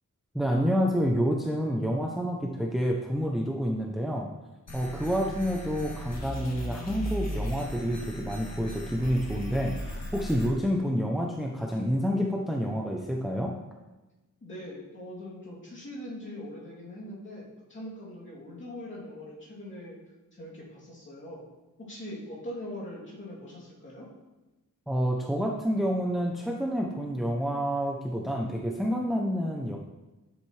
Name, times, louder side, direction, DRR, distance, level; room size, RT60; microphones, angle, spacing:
voice 1, 0.3-4.3 4.7-13.5 24.9-29.8, equal, ahead, 0 dB, 0.5 m, -28 dB
sound 1, 4.7-10.5, equal, 55° left, 1.9 m, -36 dB
voice 2, 14.4-20.0 20.4-21.4 21.8-24.1, left 1 dB, 35° left, -7 dB, 2.8 m, -42 dB
10.0 x 7.3 x 3.2 m, 1.1 s
wide cardioid pair, 180°, 32 cm